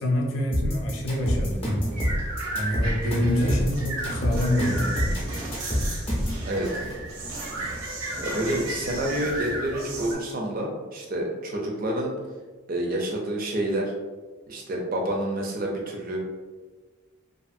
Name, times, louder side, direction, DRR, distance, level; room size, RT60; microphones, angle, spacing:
voice 1, 0.0-2.0 2.5-5.2, left 1 dB, 70° left, -1 dB, 0.5 m, -26 dB
sound 1, 0.5-6.4, equal, 25° left, 0.6 m, -26 dB
sound 2, 0.9-10.1, right 1 dB, 85° right, 0.7 m, -34 dB
voice 2, 6.4-6.8 8.2-12.1 12.7-13.9 14.5-16.2, right 1 dB, 40° right, 0 dB, 0.4 m, -28 dB
2.6 x 2.4 x 2.5 m, 1.3 s
head